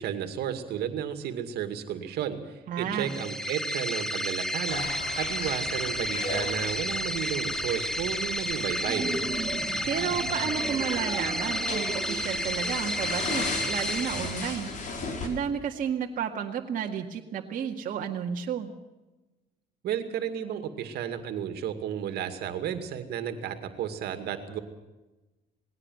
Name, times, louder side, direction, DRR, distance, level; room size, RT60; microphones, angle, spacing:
voice 1, 0.0-4.9 5.2-9.1 19.8-24.6, right 9 dB, 75° right, 8 dB, 2.4 m, -33 dB
voice 2, 2.7-3.1 9.8-14.7 15.2-18.7, right 8 dB, 55° right, 0 dB, 2.0 m, -32 dB
sound 1, 2.9-14.9, equal, 5° left, 1.2 m, -32 dB
sound 2, 4.7-15.3, left 3 dB, 50° left, 5.0 m, -37 dB
sound 3, 8.8-13.3, right 4 dB, 25° right, 1.7 m, -36 dB
20.0 x 16.5 x 7.9 m, 1.1 s
cardioid pair, 110°, 17 cm